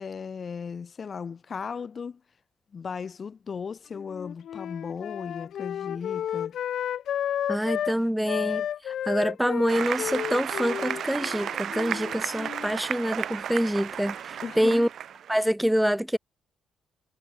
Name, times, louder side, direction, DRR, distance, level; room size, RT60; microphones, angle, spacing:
voice 1, 0.0-2.2 2.7-6.6 14.4-14.9, left 6 dB, 45° left, 2.3 m, -36 dB
Wind instrument woodwind instrument, 3.9-8.0 8.3-12.7, left 10 dB, 70° left, 0.4 m, -32 dB
voice 2, 7.5-14.9 15.3-16.2, equal, 5° right, 1.5 m, -26 dB
Applause, 9.7-15.3, right 9 dB, 65° right, 1.3 m, -33 dB
cardioid pair, 90°, 0 cm